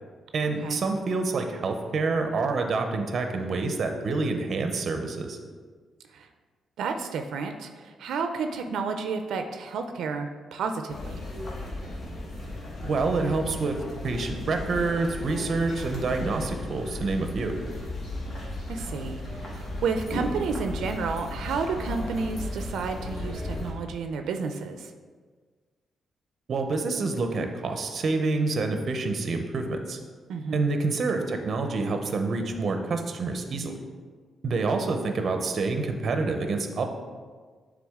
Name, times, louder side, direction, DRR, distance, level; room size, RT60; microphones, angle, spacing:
voice 1, 0.3-5.4 12.8-13.8 14.0-17.6 26.5-30.0 30.5-33.8 34.4-36.9, right 3 dB, 40° right, 5 dB, 0.6 m, -27 dB
voice 2, 6.8-11.2 18.7-24.9 30.3-30.7, right 5 dB, 90° right, 6 dB, 0.4 m, -31 dB
sound 1, 10.9-23.7, left 1 dB, 45° left, 1.3 m, -35 dB
9.3 x 3.7 x 3.6 m, 1.5 s
wide cardioid pair, 170°, 0 cm